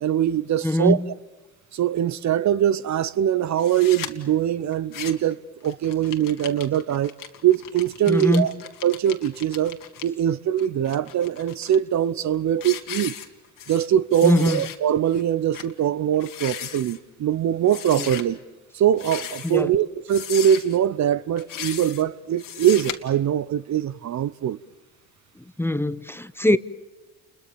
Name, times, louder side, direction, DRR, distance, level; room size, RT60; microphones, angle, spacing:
voice 1, 0.0-1.0 1.7-7.1 7.4-8.5 8.8-13.1 13.7-18.4 18.7-24.6 26.5-26.6, right 10 dB, 50° right, 0.8 m, -22 dB
voice 2, 0.6-1.1 8.1-8.5 14.2-14.6 19.4-19.7 25.6-26.6, left 1 dB, 5° left, 0.9 m, -21 dB
sound 1, 3.6-4.1 4.7-5.3 5.6-10.0 10.6-11.8 12.2-12.3 12.6-13.9 14.1-14.8 15.1-15.2 15.5-15.7 16.1-17.0 17.7-18.2 18.9-19.6 20.1-20.8 21.4-22.0 22.4-22.9, left 10 dB, 60° left, 2.3 m, -36 dB
29.5 x 22.0 x 7.0 m
supercardioid pair, 75°, 36 cm